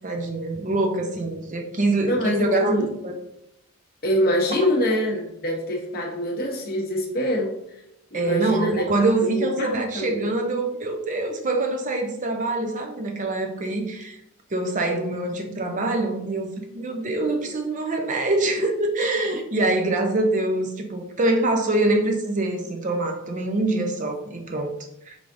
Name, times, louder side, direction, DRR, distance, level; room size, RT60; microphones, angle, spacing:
voice 1, 0.0-3.1 8.1-14.2 14.5-24.7 25.1-25.2, right 2 dB, 35° right, 4 dB, 0.5 m, -24 dB
voice 2, 2.1-2.9 4.0-7.5 8.1-8.8 9.4-10.3 17.2-17.5, equal, 45° left, 0 dB, 0.8 m, -24 dB
4.8 x 3.4 x 2.6 m, 0.80 s
head